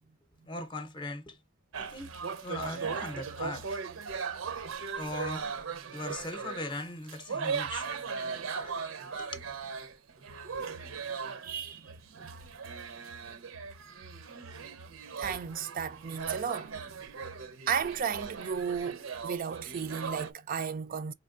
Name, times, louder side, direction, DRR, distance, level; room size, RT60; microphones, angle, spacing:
voice 1, 0.4-1.4 1.8-2.1 2.4-3.8 5.0-5.5 5.9-7.9 8.6-8.8 9.2-9.4, left 2 dB, 25° left, 0.7 m, -39 dB
sound 1, 1.7-6.8 7.1-20.3, right 5 dB, 80° right, 0.7 m, -38 dB
voice 2, 11.4-11.9 12.2-12.3 15.2-16.7 17.7-21.1, right 7 dB, 45° right, 0.4 m, -34 dB
4.3 x 3.3 x 2.4 m
head